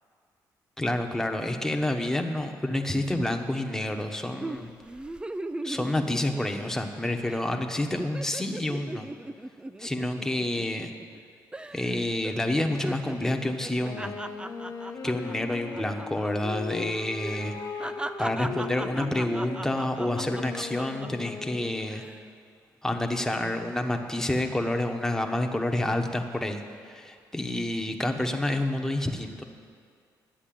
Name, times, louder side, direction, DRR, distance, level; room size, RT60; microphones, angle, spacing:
voice 1, 0.8-4.7 5.6-9.1 9.8-10.9 11.7-14.1 15.0-17.6 18.2-22.0 22.8-29.4, left 1 dB, 5° left, 4 dB, 1.1 m, -28 dB
sound 1, 4.4-6.9 7.2-7.5 7.8-11.2 11.5-11.9 12.2-16.3 16.6-16.7 17.2-21.3 21.8-22.2, right 1 dB, 10° right, 0.4 m, -38 dB
Wind instrument woodwind instrument, 13.7-22.1, left 5 dB, 55° left, 1.2 m, -38 dB
10.0 x 8.0 x 7.7 m, 2.2 s
cardioid pair, 70°, 8 cm